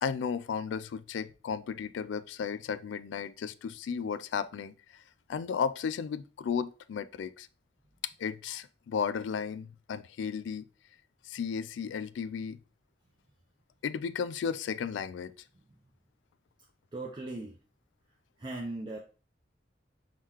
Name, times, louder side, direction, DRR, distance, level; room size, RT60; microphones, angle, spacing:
voice 1, 0.0-5.0 5.3-7.5 8.2-10.6 11.3-12.6 13.8-15.3, left 6 dB, 85° left, 0.3 m, -34 dB
voice 2, 16.9-17.5 18.4-19.0, right 2 dB, 25° right, 0.5 m, -38 dB
4.7 x 3.7 x 2.9 m
head